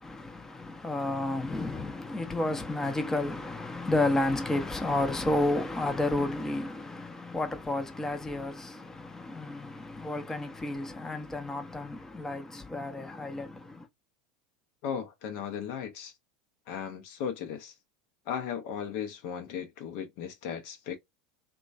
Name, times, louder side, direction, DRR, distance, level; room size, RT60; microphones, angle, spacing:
voice 1, 0.0-13.9, left 2 dB, 10° left, 0.6 m, -31 dB
voice 2, 14.8-16.1 16.7-17.7 18.3-21.0, left 8 dB, 55° left, 0.6 m, -36 dB
3.0 x 2.2 x 2.5 m
figure-of-eight pair, 80°, 4 cm